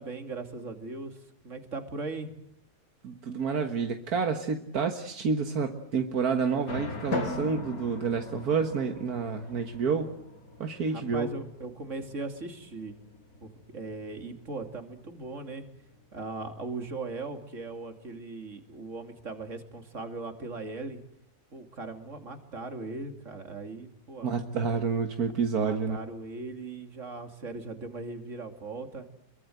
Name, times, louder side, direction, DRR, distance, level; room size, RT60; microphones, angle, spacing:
voice 1, 0.0-2.3 10.9-12.9 13.4-15.7 16.1-21.0 21.5-24.3 25.5-29.1, right 3 dB, 50° right, 6 dB, 3.0 m, -39 dB
voice 2, 3.0-10.1 10.6-11.3 24.2-26.0, right 5 dB, 75° right, 5 dB, 2.0 m, -29 dB
sound 1, 6.7-17.8, left 2 dB, 70° left, 3.0 m, -46 dB
Drum, 7.1-9.4, left 3 dB, 85° left, 2.9 m, -36 dB
28.5 x 23.0 x 7.9 m, 0.72 s
omnidirectional pair, 1.6 m